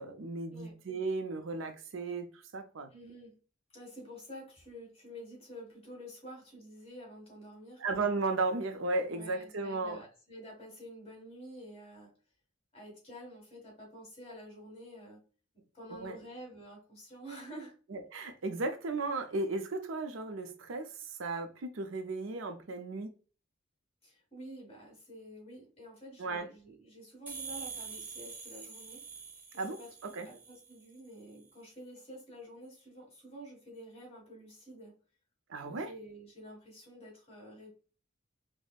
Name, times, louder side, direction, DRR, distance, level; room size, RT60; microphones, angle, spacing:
voice 1, 0.0-2.3 2.5-2.9 7.8-10.0 15.9-16.2 17.9-20.9 21.2-23.1 26.2-26.5 29.6-29.8 30.0-30.3 35.5-35.9, right 3 dB, 90° right, 0.6 m, -35 dB
voice 2, 2.9-3.3 3.7-7.8 9.1-12.1 12.7-15.2 15.7-17.7 24.0-29.0 29.5-34.9 35.6-37.7, equal, 30° left, 1.8 m, -49 dB
sound 1, 27.3-30.8, right 5 dB, 10° right, 0.6 m, -45 dB
5.1 x 2.0 x 2.4 m
head